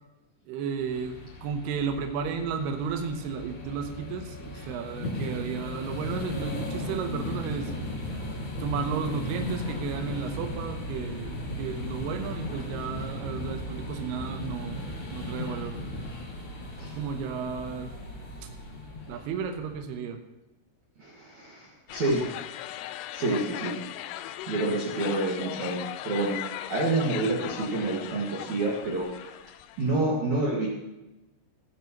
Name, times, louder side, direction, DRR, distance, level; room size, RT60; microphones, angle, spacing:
voice 1, 0.5-7.7 8.6-15.8 17.0-17.9 19.1-20.2, right 6 dB, 85° right, 6 dB, 2.3 m, -33 dB
sound 1, 0.8-19.8, left 1 dB, 45° left, 1.5 m, -36 dB
voice 2, 21.0-22.2 22.7-22.8 23.1-23.8 24.5-26.4 26.7-29.3 29.8-30.7, right 2 dB, 55° right, -4 dB, 2.2 m, -28 dB
sound 2, 21.9-30.0, left 14 dB, 85° left, 2.9 m, -38 dB
15.0 x 15.0 x 3.0 m, 1.0 s
omnidirectional pair, 5.9 m